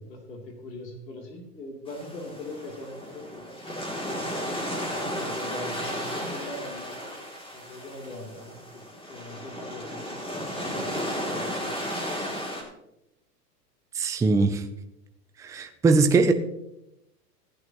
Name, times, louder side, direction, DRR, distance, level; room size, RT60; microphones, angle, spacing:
voice 1, 0.0-3.6 4.9-7.2 7.5-12.7, left 1 dB, 85° left, 1 dB, 3.4 m, -42 dB
sound 1, 1.9-12.6, equal, 10° left, 2.9 m, -34 dB
voice 2, 13.9-14.6 15.4-16.3, right 3 dB, 5° right, 6 dB, 0.5 m, -21 dB
15.5 x 10.5 x 3.0 m, 0.85 s
hypercardioid pair, 120°, 48 cm